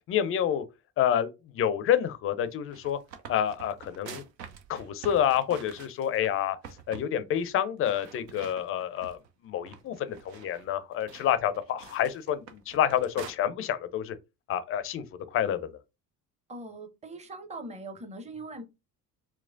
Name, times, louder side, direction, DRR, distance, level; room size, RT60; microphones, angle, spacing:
voice 1, 0.1-0.6 1.0-3.0 3.3-4.2 4.7-6.6 6.9-9.2 9.4-14.1 14.5-15.0 15.3-15.7, left 10 dB, 30° left, 0.4 m, -28 dB
sound 1, 2.5-6.3 6.6-7.1 7.4-7.5 7.8-9.3 9.7-13.3, right 6 dB, 80° right, 0.7 m, -47 dB
voice 2, 16.5-18.6, right 2 dB, 15° right, 0.6 m, -41 dB
4.4 x 2.0 x 2.5 m
figure-of-eight pair, 55°, 49 cm